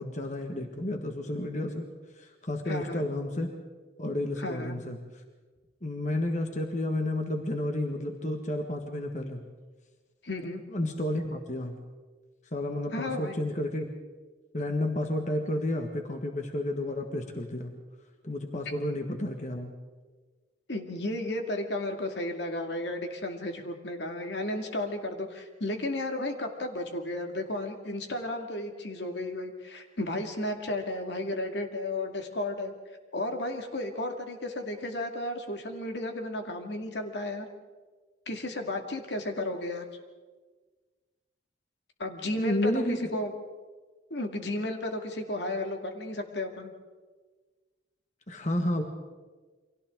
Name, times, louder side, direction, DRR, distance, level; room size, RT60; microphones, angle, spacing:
voice 1, 0.0-1.9 2.2-3.5 4.0-5.0 5.8-9.4 10.7-11.8 12.5-13.9 14.5-17.7 18.2-19.7 42.4-43.1 48.3-48.8, left 1 dB, 40° left, 3 dB, 1.7 m, -31 dB
voice 2, 2.7-3.0 4.4-4.8 10.2-10.6 12.9-13.4 20.7-32.7 33.1-37.5 38.3-39.9 42.0-43.3 44.1-46.7, left 1 dB, 65° left, 4 dB, 2.3 m, -33 dB
29.5 x 24.0 x 3.8 m, 1.3 s
head